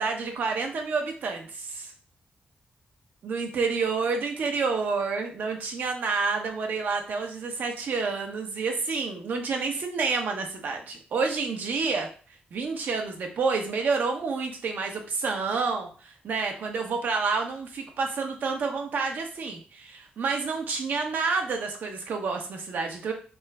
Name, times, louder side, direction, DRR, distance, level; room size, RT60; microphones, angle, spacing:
voice 1, 0.0-1.9 3.2-12.1 12.5-23.1, right 4 dB, 70° right, 3 dB, 1.0 m, -29 dB
3.7 x 3.6 x 3.4 m, 0.39 s
wide cardioid pair, 135°, 3 cm